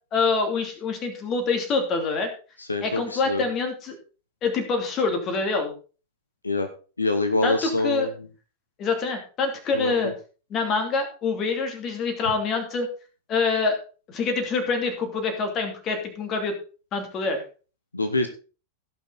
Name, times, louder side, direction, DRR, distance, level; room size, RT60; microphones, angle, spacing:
voice 1, 0.1-2.3 2.8-3.9 4.4-5.7 7.4-8.1 8.8-10.1 10.5-12.9 13.3-13.8 14.1-16.5 16.9-17.4, left 4 dB, 30° left, 5 dB, 2.9 m, -25 dB
voice 2, 2.7-3.4 6.4-6.7 7.0-8.1 9.7-10.1 17.9-18.3, left 2 dB, 80° left, 8 dB, 1.0 m, -25 dB
16.5 x 5.8 x 4.2 m, 0.35 s
figure-of-eight pair, 90°, 0 cm